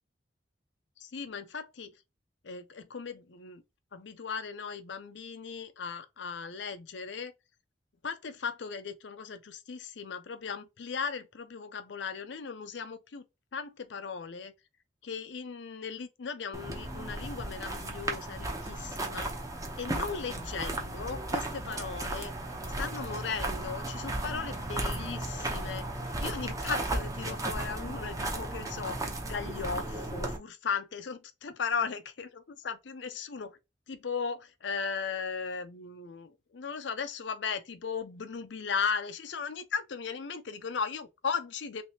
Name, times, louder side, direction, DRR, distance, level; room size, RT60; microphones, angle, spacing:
voice 1, 1.0-1.9 2.4-3.6 3.9-7.3 8.0-13.2 13.5-14.5 15.0-19.3 19.8-22.3 22.7-33.6 33.9-41.8, left 5 dB, 70° left, 0.6 m, -37 dB
sound 1, 16.5-30.4, right 1 dB, 20° right, 0.7 m, -35 dB
3.3 x 3.2 x 2.8 m
head